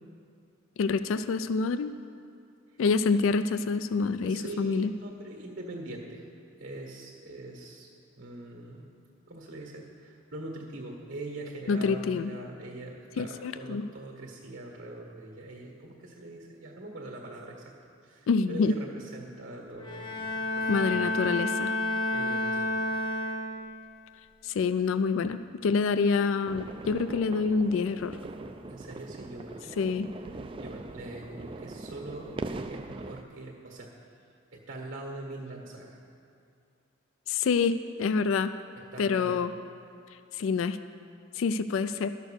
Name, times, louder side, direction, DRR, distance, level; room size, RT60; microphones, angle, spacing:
voice 1, 0.8-1.9 2.8-4.9 11.7-12.3 13.2-13.9 18.3-18.8 20.7-21.7 24.4-28.2 29.8-30.1 37.3-38.5 39.0-39.5 40.3-40.8 41.4-42.1, left 5 dB, 75° left, 12 dB, 0.3 m, -27 dB
voice 2, 4.2-6.2 6.6-7.9 8.2-8.9 9.3-17.7 18.0-21.1 22.0-23.0 28.7-29.6 30.3-33.9 34.5-36.0 38.9-39.3, right 2 dB, 75° right, -1 dB, 1.6 m, -43 dB
Bowed string instrument, 19.8-23.8, left 1 dB, 25° left, 0.8 m, -30 dB
sound 1, 26.4-33.2, right 2 dB, 25° right, 0.3 m, -41 dB
12.0 x 6.7 x 6.4 m, 2.4 s
head